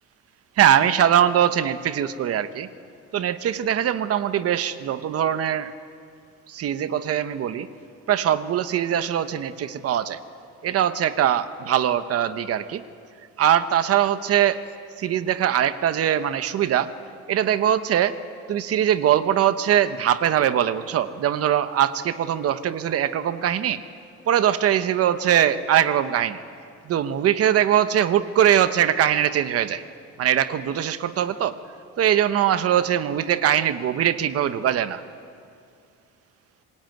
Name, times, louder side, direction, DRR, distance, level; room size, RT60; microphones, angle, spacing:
voice 1, 0.6-2.7 3.1-5.7 6.5-7.7 8.1-10.2 10.6-12.8 13.4-14.6 15.0-16.9 17.3-18.2 18.5-23.8 24.3-26.4 26.8-29.8 30.2-31.6 32.0-35.0, right 10 dB, 50° right, 12 dB, 1.0 m, -21 dB
26.0 x 21.5 x 9.3 m, 2.4 s
cardioid pair, 170°, 30 cm